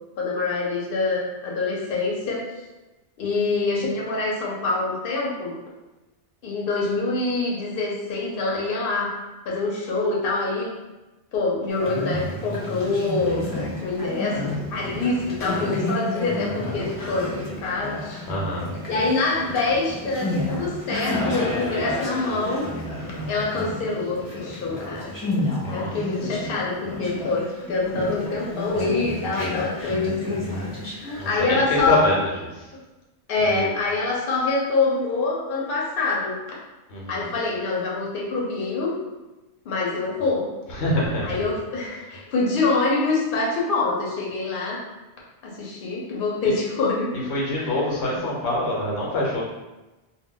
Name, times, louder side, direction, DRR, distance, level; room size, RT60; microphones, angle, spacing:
voice 1, 0.2-2.4 3.2-5.5 6.4-9.1 9.4-10.7 11.3-13.4 13.8-18.2 18.9-22.7 23.3-25.1 25.7-32.1 33.3-36.4 37.1-38.9 39.6-40.5 41.2-44.8 45.4-47.3 47.5-47.8, left 3 dB, 60° left, -4 dB, 0.8 m, -25 dB
Conversation, 11.7-31.4, left 1 dB, 25° left, 0.5 m, -31 dB
voice 2, 18.3-18.7 25.6-25.9 31.2-32.2 33.5-33.7 36.9-37.3 40.7-41.2 47.3-49.4, left 1 dB, 90° left, -3 dB, 1.0 m, -25 dB
2.2 x 2.2 x 3.7 m, 1.1 s
omnidirectional pair, 1.1 m